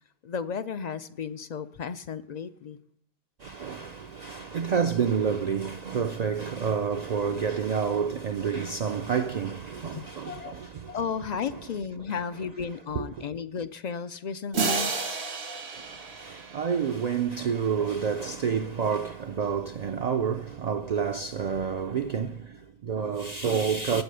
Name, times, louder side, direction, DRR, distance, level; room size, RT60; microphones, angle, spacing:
voice 1, 0.2-2.8 9.9-10.5 10.9-15.6, left 6 dB, 55° left, 0.5 m, -34 dB
voice 2, 3.4-11.0 13.0-13.1 15.7-24.0, right 6 dB, 55° right, 0.5 m, -29 dB
sound 1, 14.5-17.4, right 4 dB, 85° right, 1.7 m, -32 dB
8.5 x 8.1 x 6.6 m
omnidirectional pair, 1.1 m